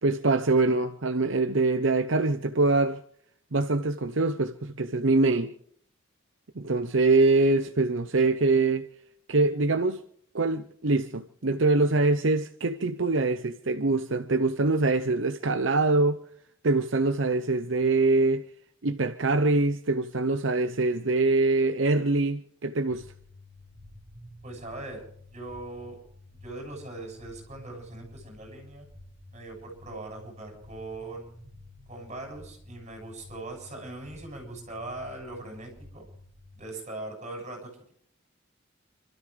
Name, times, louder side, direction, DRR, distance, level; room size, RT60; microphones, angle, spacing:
voice 1, 0.0-3.0 3.5-5.5 6.6-8.9 9.3-10.0 10.3-16.2 16.6-18.4 18.8-23.1, right 3 dB, 70° right, 0.9 m, -24 dB
sound 1, 22.9-36.6, left 1 dB, 15° right, 7.2 m, -50 dB
voice 2, 24.4-25.0 25.3-26.0 26.4-28.9 29.3-31.4 31.9-36.1 36.5-37.9, right 2 dB, 35° right, 7.2 m, -40 dB
29.5 x 13.0 x 3.4 m
head